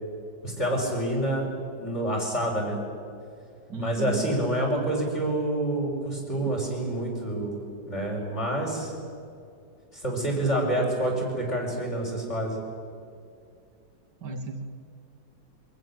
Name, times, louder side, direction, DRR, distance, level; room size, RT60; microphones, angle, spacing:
voice 1, 0.4-1.5 1.8-2.8 3.8-7.6 7.8-8.9 9.9-12.6, right 1 dB, 40° left, -2 dB, 5.9 m, -27 dB
voice 2, 3.7-4.3 14.2-14.6, right 4 dB, 70° right, 7 dB, 2.5 m, -34 dB
28.0 x 24.0 x 7.8 m, 2.4 s
omnidirectional pair, 1.9 m